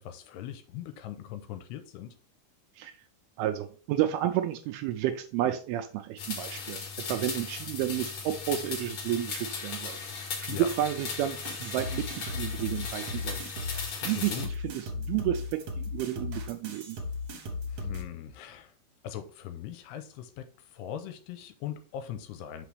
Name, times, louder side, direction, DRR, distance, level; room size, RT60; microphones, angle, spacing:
voice 1, 0.0-2.1 10.5-10.7 14.0-14.5 17.7-18.7 19.0-22.7, left 10 dB, 85° left, 2.6 m, -40 dB
voice 2, 3.4-10.0 10.4-13.4 14.0-14.3 14.6-17.0, right 12 dB, 85° right, 2.3 m, -31 dB
sound 1, 6.2-14.5, left 5 dB, 60° left, 1.9 m, -37 dB
sound 2, 11.5-18.0, left 3 dB, 60° right, 1.7 m, -36 dB
6.0 x 5.8 x 3.3 m
omnidirectional pair, 4.8 m